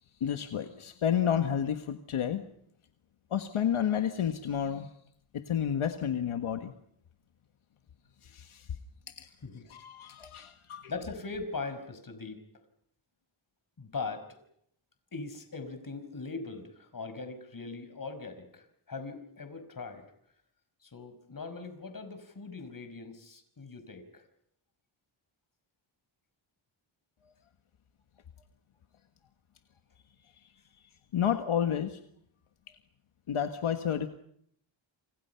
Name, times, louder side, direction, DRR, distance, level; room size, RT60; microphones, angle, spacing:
voice 1, 0.2-2.4 3.3-4.9 5.5-6.7 8.2-8.7 9.2-9.3 9.7-10.9 31.1-32.0 33.3-34.1, left 9 dB, 80° left, 6 dB, 1.6 m, -30 dB
voice 2, 10.9-12.4 13.8-14.4 15.1-20.0 20.8-24.2, left 4 dB, 40° left, 8 dB, 5.4 m, -40 dB
28.5 x 28.5 x 5.8 m, 0.72 s
wide cardioid pair, 110°, 49 cm